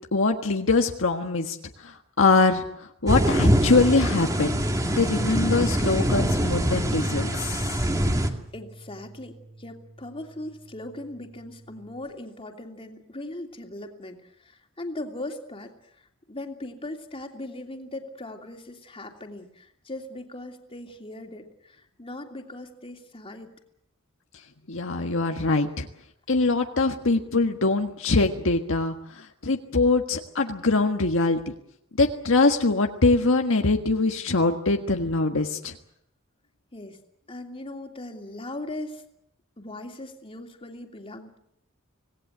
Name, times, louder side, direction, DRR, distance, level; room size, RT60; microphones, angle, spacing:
voice 1, 0.1-4.6 4.9-7.7 24.7-25.9 26.3-31.4 32.0-35.7, left 3 dB, 70° left, 4 dB, 1.5 m, -23 dB
sound 1, 3.1-8.3, equal, 15° right, 2.2 m, -24 dB
Bass guitar, 5.7-12.0, right 2 dB, 55° right, 6.9 m, -45 dB
voice 2, 8.1-23.5 36.7-37.0 37.3-39.0 39.6-41.4, left 1 dB, 25° left, 3 dB, 2.9 m, -39 dB
26.0 x 18.5 x 8.0 m, 0.74 s
head